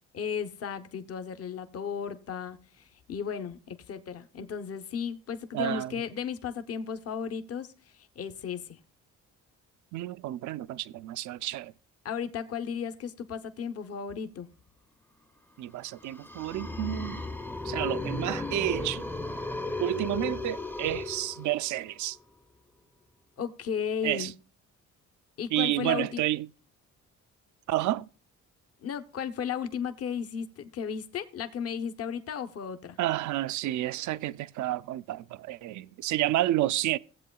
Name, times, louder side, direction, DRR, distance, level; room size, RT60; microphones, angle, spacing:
voice 1, 0.1-8.8 12.0-14.5 23.4-24.3 25.4-26.2 28.8-33.0, left 7 dB, 50° left, 0.8 m, -35 dB
voice 2, 5.5-6.0 9.9-11.7 15.6-17.2 17.6-19.1 19.8-22.2 24.0-24.3 25.5-26.5 27.7-28.1 33.0-37.0, right 14 dB, 75° right, 0.5 m, -30 dB
sound 1, 15.9-21.8, left 2 dB, 5° left, 0.5 m, -35 dB
17.5 x 7.8 x 2.3 m
cardioid pair, 90°, 30 cm